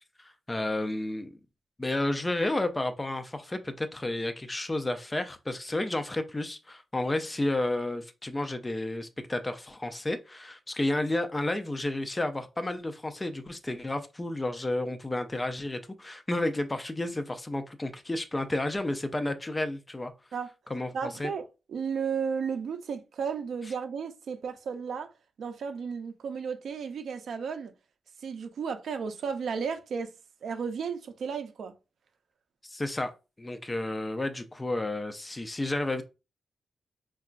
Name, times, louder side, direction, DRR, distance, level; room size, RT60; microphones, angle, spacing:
voice 1, 0.2-1.4 1.8-20.1 20.7-20.9 21.2-21.3 32.6-33.1 33.4-36.0, left 1 dB, 15° left, 0.3 m, -31 dB
voice 2, 20.9-21.4 21.7-25.1 25.4-27.7 28.2-30.1 30.4-31.7, right 6 dB, 70° right, 0.4 m, -33 dB
3.7 x 2.2 x 2.4 m
wide cardioid pair, 165°, 0 cm